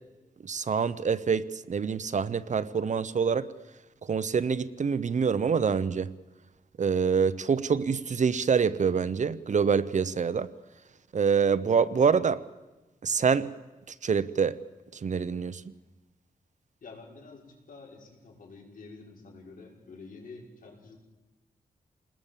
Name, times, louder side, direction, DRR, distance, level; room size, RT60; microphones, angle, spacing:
voice 1, 0.4-3.5 4.1-6.1 6.8-10.5 11.1-12.4 13.0-13.5 13.9-14.6 15.0-15.6, right 6 dB, 50° right, 15 dB, 0.9 m, -26 dB
voice 2, 16.8-21.0, left 3 dB, 65° left, 0 dB, 5.7 m, -48 dB
29.0 x 20.5 x 7.5 m, 1.1 s
wide cardioid pair, 95°, 15 cm